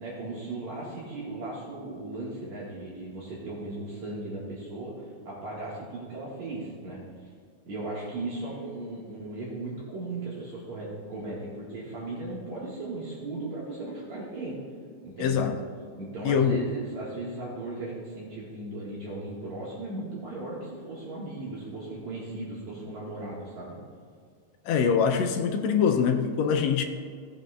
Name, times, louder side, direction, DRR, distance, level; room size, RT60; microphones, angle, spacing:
voice 1, 0.0-7.3 7.7-14.6 15.0-15.5 15.9-23.8, right 2 dB, 70° right, -7 dB, 2.8 m, -37 dB
voice 2, 15.2-15.6 16.2-16.7 24.7-26.8, left 6 dB, 80° left, 5 dB, 1.7 m, -24 dB
17.0 x 8.1 x 2.3 m, 2.1 s
omnidirectional pair, 3.4 m